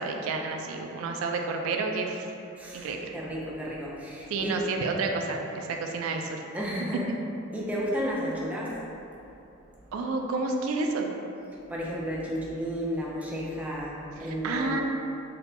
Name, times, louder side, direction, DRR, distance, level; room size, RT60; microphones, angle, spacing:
voice 1, 0.0-2.2 2.7-3.1 4.3-6.4 9.9-11.1 14.3-14.8, right 3 dB, 85° right, 3 dB, 0.3 m, -30 dB
voice 2, 2.6-2.9 3.1-4.6 6.5-7.1 7.5-8.7 11.7-14.8, equal, 5° right, -5 dB, 0.4 m, -32 dB
4.1 x 2.2 x 2.7 m, 2.8 s
head